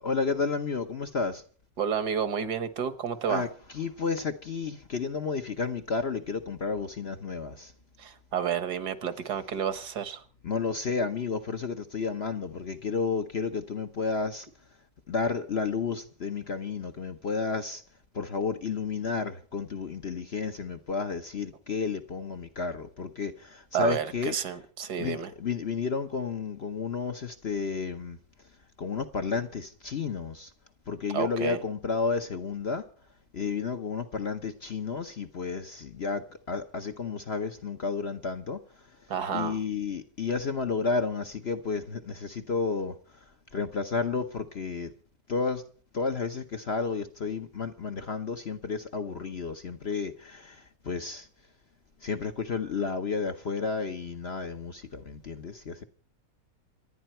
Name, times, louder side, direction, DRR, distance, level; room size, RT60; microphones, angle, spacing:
voice 1, 0.0-1.4 3.2-7.7 10.4-14.5 15.1-17.8 18.1-24.4 25.0-28.2 28.8-30.5 30.9-32.9 33.3-38.9 39.3-44.9 45.3-45.6 45.9-51.3 52.0-55.8, left 4 dB, 45° left, 1.0 m, -32 dB
voice 2, 1.8-3.5 8.0-10.2 23.7-25.3 31.1-31.6 39.1-39.6, right 8 dB, 65° right, 1.8 m, -30 dB
27.5 x 10.0 x 4.4 m
omnidirectional pair, 1.9 m